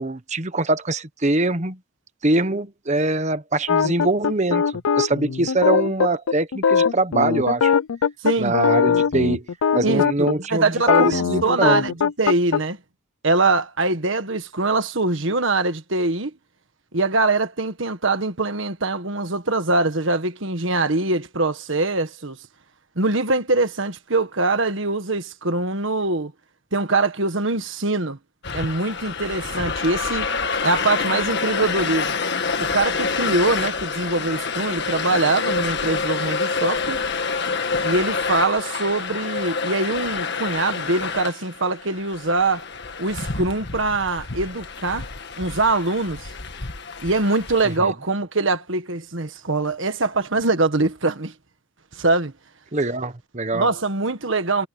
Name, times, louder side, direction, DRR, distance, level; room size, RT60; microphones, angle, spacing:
voice 1, 0.0-1.8 2.2-7.7 8.4-9.5 9.7-11.8 47.8-47.9 52.7-53.7, right 2 dB, 35° right, 1.2 m, -23 dB
sound 1, 3.7-10.3 10.8-12.6, left 6 dB, 80° left, 0.5 m, -20 dB
voice 2, 8.2-8.5 9.8-12.8 13.2-16.3 16.9-22.4 22.9-26.3 26.7-28.2 28.5-30.3 30.6-32.2 32.6-37.0 37.8-42.6 43.0-45.1 45.4-46.3 47.0-51.3 51.9-52.3 53.5-54.7, right 3 dB, 65° right, 1.6 m, -23 dB
sound 2, 28.4-47.8, left 5 dB, 55° left, 1.7 m, -27 dB
head